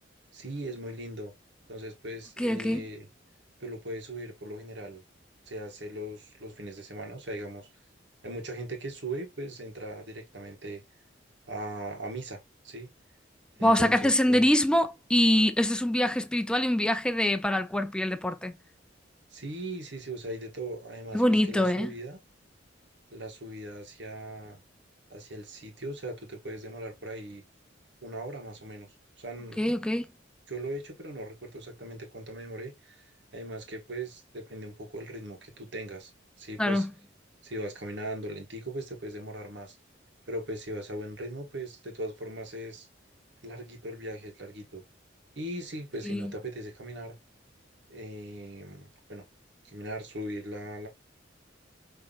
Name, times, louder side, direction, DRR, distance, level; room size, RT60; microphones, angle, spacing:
voice 1, 0.3-1.3 1.7-3.1 3.6-5.0 5.5-7.7 8.2-10.8 11.5-12.9 13.6-14.6 19.3-22.2 23.1-24.6 25.1-27.4 28.0-29.7 30.5-36.1 36.4-36.9 37.4-39.8 40.3-42.9 43.4-44.8 45.4-47.2 47.9-49.3 49.6-50.9, right 1 dB, 65° right, 1.7 m, -39 dB
voice 2, 2.4-2.8 13.6-18.5 21.1-21.9 29.6-30.1 36.6-36.9 46.0-46.3, left 1 dB, 5° left, 0.5 m, -24 dB
5.8 x 3.2 x 2.5 m
head